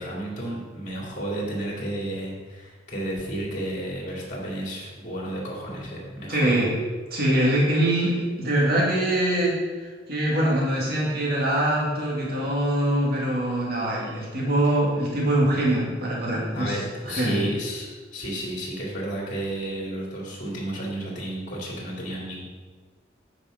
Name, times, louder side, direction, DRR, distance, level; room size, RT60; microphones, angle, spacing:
voice 1, 0.0-6.6 16.5-17.9 18.1-22.4, right 1 dB, 40° left, -4 dB, 2.5 m, -32 dB
voice 2, 6.3-6.7 7.1-16.7 17.1-17.4, right 1 dB, 55° right, -4 dB, 2.1 m, -23 dB
9.0 x 5.2 x 5.1 m, 1.4 s
head